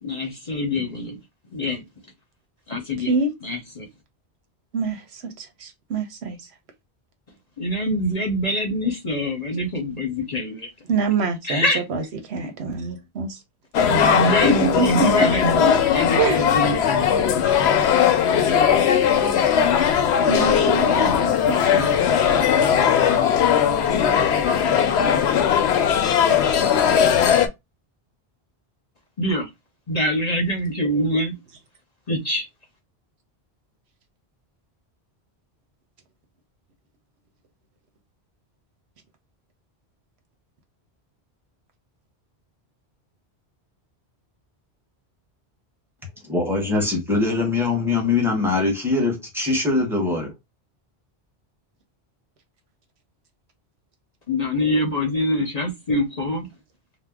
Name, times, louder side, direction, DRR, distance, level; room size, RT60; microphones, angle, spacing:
voice 1, 0.0-1.2 1.5-1.8 2.7-3.1 3.4-3.9 7.6-10.7 11.4-11.8 13.9-17.0 29.2-29.5 29.9-31.3 32.1-32.5 54.3-56.5, equal, 45° left, 0.7 m, -24 dB
voice 2, 4.7-6.4 10.9-12.0 12.3-13.4 14.4-15.3 16.2-16.4 20.2-21.9, right 4 dB, 80° right, 1.1 m, -25 dB
sound 1, 13.7-27.5, left 8 dB, 80° left, 0.8 m, -19 dB
voice 3, 46.2-50.3, left 3 dB, ahead, 1.1 m, -22 dB
2.8 x 2.0 x 3.4 m
omnidirectional pair, 1.1 m